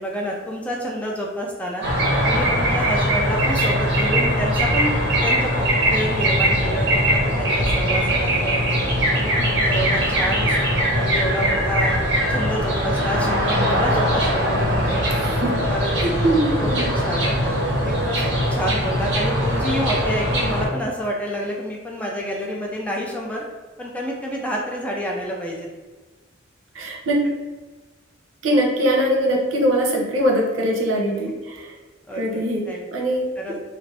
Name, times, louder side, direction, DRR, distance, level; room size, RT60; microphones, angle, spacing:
voice 1, 0.0-1.9 2.3-5.0 5.2-8.6 9.1-12.0 12.3-15.1 15.7-15.9 16.6-17.4 17.8-23.4 23.8-25.7 32.1-32.8 33.4-33.6, equal, 5° left, -2 dB, 0.3 m, -29 dB
sound 1, 1.8-20.7, equal, 60° right, 0.9 m, -21 dB
voice 2, 15.0-15.7 16.0-16.9 26.7-27.4 28.4-31.7 32.2-33.2, right 1 dB, 85° right, 0 dB, 0.6 m, -22 dB
2.5 x 2.5 x 3.2 m, 1.3 s
head